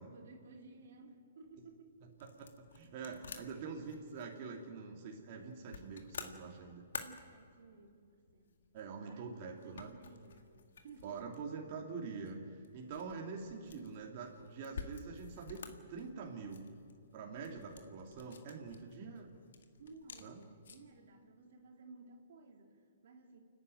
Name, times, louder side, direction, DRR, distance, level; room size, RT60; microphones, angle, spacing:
voice 1, 0.1-2.4 2.8-3.3 6.9-8.6 9.0-11.4 19.8-23.4, right 3 dB, 65° right, 2 dB, 3.0 m, -57 dB
sound 1, 1.4-21.0, left 6 dB, 75° left, 1.9 m, -53 dB
voice 2, 2.2-6.8 8.7-9.9 11.0-16.7 17.1-19.3 20.2-20.4, right 5 dB, 45° right, 0 dB, 2.6 m, -45 dB
29.0 x 10.0 x 9.1 m, 2.4 s
hypercardioid pair, 140°, 0 cm